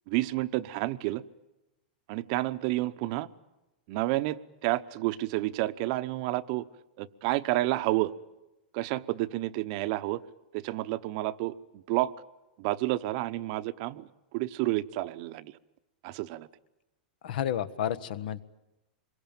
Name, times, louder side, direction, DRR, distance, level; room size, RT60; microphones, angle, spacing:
voice 1, 0.1-1.2 2.1-3.3 3.9-6.6 7.0-8.1 8.7-10.2 10.5-11.5 11.9-12.1 12.6-14.1 14.3-15.5 16.0-16.5, right 17 dB, 45° right, 13 dB, 0.9 m, -30 dB
voice 2, 17.2-18.4, left 10 dB, 70° left, 15 dB, 1.3 m, -31 dB
26.0 x 23.0 x 8.9 m, 0.99 s
supercardioid pair, 150°, 5 cm